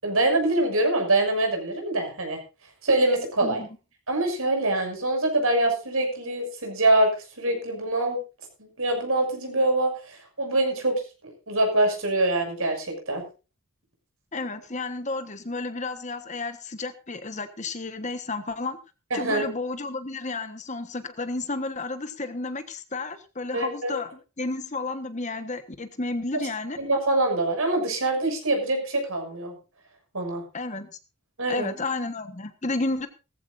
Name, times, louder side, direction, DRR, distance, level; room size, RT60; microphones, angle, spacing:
voice 1, 0.0-2.4 2.8-3.6 4.1-7.1 7.4-8.2 8.6-11.0 11.5-13.2 19.1-19.5 23.5-23.9 26.8-29.5 30.1-30.4 31.4-31.7, right 2 dB, 70° right, 3 dB, 6.4 m, -24 dB
voice 2, 14.3-18.8 19.1-26.8 30.5-31.0 31.5-33.1, left 3 dB, 30° left, 10 dB, 1.3 m, -32 dB
18.5 x 14.5 x 2.6 m, 0.30 s
head